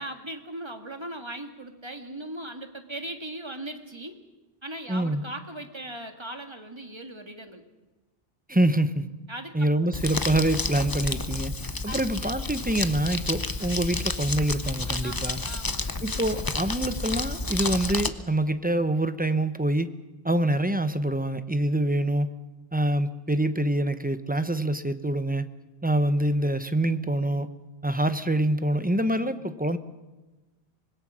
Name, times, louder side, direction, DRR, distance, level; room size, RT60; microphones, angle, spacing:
voice 1, 0.0-4.2 4.6-7.6 9.3-9.7 11.9-12.1 15.0-15.9, right 1 dB, 25° right, 5 dB, 1.8 m, -38 dB
voice 2, 4.9-5.2 8.5-9.1 9.5-11.5 11.8-15.4 16.0-19.9 20.2-22.3 22.7-25.4 25.8-27.5 27.8-29.8, right 1 dB, 10° right, 11 dB, 0.7 m, -25 dB
Crumpling crinkling, 9.9-18.1, left 3 dB, 20° left, 0.8 m, -30 dB
25.5 x 21.0 x 6.3 m, 1.2 s
omnidirectional pair, 1.1 m